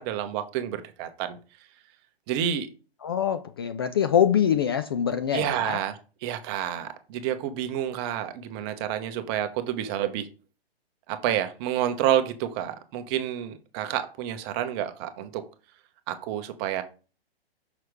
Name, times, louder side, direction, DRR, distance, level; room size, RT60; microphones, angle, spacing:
voice 1, 0.0-1.4 2.3-2.7 5.3-5.9 6.2-10.3 11.1-15.4 16.1-16.8, right 10 dB, 25° right, 1.0 m, -29 dB
voice 2, 3.0-5.8, left 8 dB, 25° left, 0.4 m, -24 dB
6.2 x 6.1 x 4.8 m
figure-of-eight pair, 125°, 31 cm